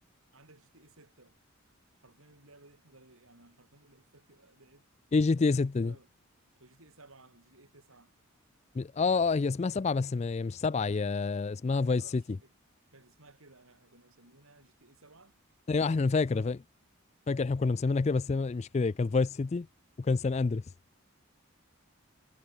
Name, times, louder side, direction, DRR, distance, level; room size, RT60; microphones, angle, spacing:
voice 1, 0.3-1.4 2.0-4.9 5.4-6.1 6.6-8.2 11.7-12.5 12.9-15.4 15.7-16.6, right 2 dB, 80° right, 5.8 m, -59 dB
voice 2, 5.1-5.9 8.8-12.2 15.7-16.6 17.3-19.7 20.0-20.6, left 4 dB, 30° left, 0.3 m, -28 dB
head